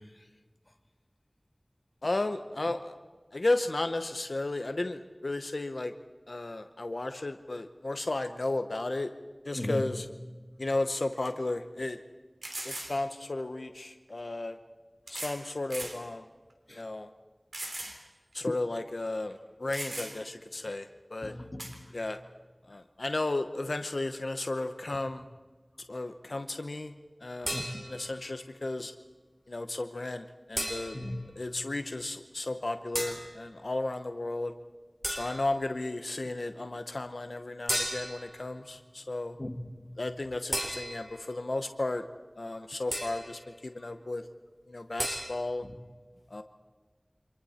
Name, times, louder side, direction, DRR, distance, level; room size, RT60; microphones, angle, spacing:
voice 1, 2.0-2.9 3.3-5.9 6.3-9.1 9.4-10.1 10.6-12.0 12.6-14.6 15.1-16.3 16.7-17.1 18.3-21.3 21.9-22.2 22.7-25.3 25.9-26.9 27.2-28.9 29.5-31.0 31.4-34.5 35.1-39.4 40.0-42.0 42.4-44.2 44.7-45.7 46.3-46.4, left 2 dB, 85° left, 8 dB, 0.9 m, -34 dB
voice 2, 9.5-9.9 16.7-16.8 21.2-21.7 27.4-27.8 30.9-31.3 39.4-40.0 42.5-42.6 45.6-45.7, left 1 dB, 40° left, 6 dB, 1.9 m, -37 dB
sound 1, 10.6-10.7 11.2-11.3 12.4-13.0 14.1-14.2 15.1-15.4 15.7-16.0 16.5-16.6 17.5-18.0 18.3-18.4 19.3-19.4 19.7-20.3 21.6-21.8, right 1 dB, 85° right, 3.7 m, -39 dB
sound 2, 27.5-28.2 30.6-31.2 32.9-33.3 35.0-35.6 37.7-38.3 40.5-41.2 42.9-43.4 45.0-45.3, right 1 dB, 35° right, 3.9 m, -34 dB
29.0 x 26.0 x 4.4 m, 1.4 s
wide cardioid pair, 45°, 0 cm